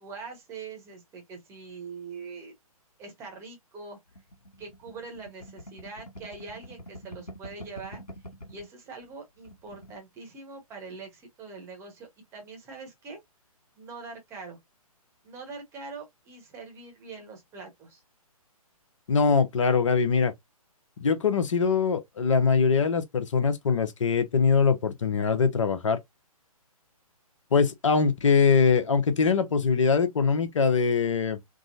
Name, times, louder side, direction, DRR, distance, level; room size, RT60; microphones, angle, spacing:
voice 1, 0.0-2.5 3.0-4.0 4.6-8.0 8.5-13.2 13.7-14.6 15.2-18.0, right 4 dB, 15° right, 0.9 m, -43 dB
sound 1, 4.1-8.7 9.0-9.1 9.4-10.0, equal, 85° left, 1.4 m, -45 dB
voice 2, 19.1-20.3 21.0-26.0 27.5-31.4, left 5 dB, 55° left, 0.8 m, -23 dB
3.6 x 2.0 x 2.5 m
figure-of-eight pair, 135°, 19 cm